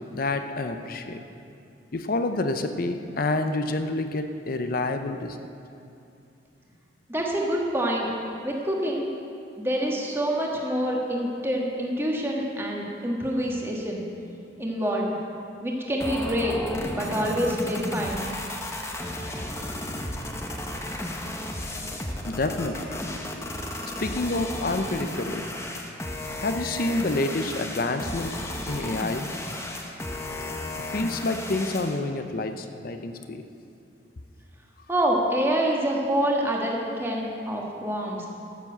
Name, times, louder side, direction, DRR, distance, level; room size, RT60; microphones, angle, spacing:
voice 1, 0.1-1.2 1.9-5.4 22.3-23.0 24.0-25.4 26.4-29.3 30.9-33.4, left 2 dB, 50° left, 7 dB, 0.6 m, -28 dB
voice 2, 7.1-8.1 8.4-9.1 9.6-14.0 14.6-15.1 15.6-16.5 16.9-18.3 34.9-38.3, equal, 10° right, -2 dB, 1.6 m, -26 dB
sound 1, 16.0-32.0, left 1 dB, 15° left, 1.0 m, -33 dB
13.0 x 7.4 x 7.9 m, 2.6 s
head